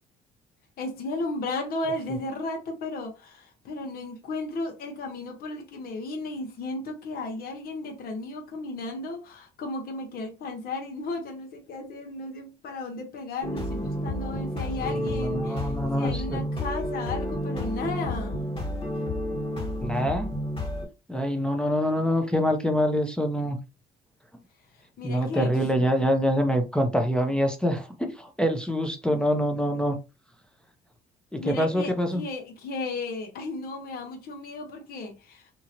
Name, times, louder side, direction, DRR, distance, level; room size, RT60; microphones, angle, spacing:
voice 1, 0.8-18.5 25.0-25.5 31.4-35.5, left 2 dB, 60° left, 1.0 m, -34 dB
sound 1, 13.4-20.9, left 1 dB, 30° left, 1.5 m, -31 dB
voice 2, 15.2-16.4 19.8-20.3 21.1-23.6 25.0-30.0 31.3-32.2, equal, 5° left, 0.6 m, -25 dB
2.8 x 2.8 x 2.5 m
cardioid pair, 110°, 17 cm